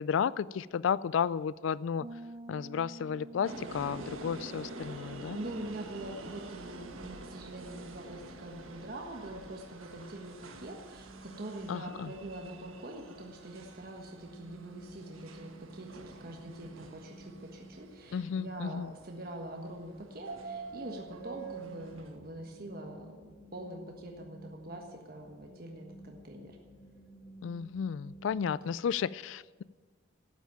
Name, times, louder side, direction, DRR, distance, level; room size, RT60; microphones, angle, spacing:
voice 1, 0.0-2.1 2.5-5.4 11.7-12.1 18.1-18.9 27.4-29.6, left 7 dB, 70° left, 20 dB, 0.3 m, -33 dB
Piano, 2.0-10.5, right 1 dB, 25° right, 0.6 m, -52 dB
sound 1, 3.4-22.2, right 3 dB, 85° right, 1.4 m, -47 dB
voice 2, 5.3-26.6 28.6-28.8, right 1 dB, 45° right, 1 dB, 1.4 m, -44 dB
sound 2, 10.5-28.7, right 1 dB, 15° left, 1.6 m, -54 dB
12.5 x 9.1 x 8.9 m, 1.4 s
head